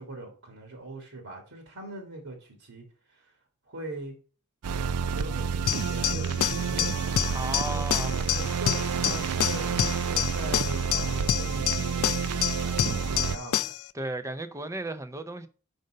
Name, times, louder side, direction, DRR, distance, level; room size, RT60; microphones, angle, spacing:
voice 1, 0.0-3.3 3.7-4.2 5.1-7.1 7.7-13.7, right 2 dB, 70° right, 1.7 m, -41 dB
sound 1, 4.6-13.4, right 6 dB, 90° right, 0.4 m, -29 dB
sound 2, 5.7-13.9, left 11 dB, 70° left, 0.4 m, -29 dB
voice 2, 7.3-8.2 13.9-15.5, right 2 dB, 15° right, 0.5 m, -34 dB
5.3 x 5.2 x 6.5 m
head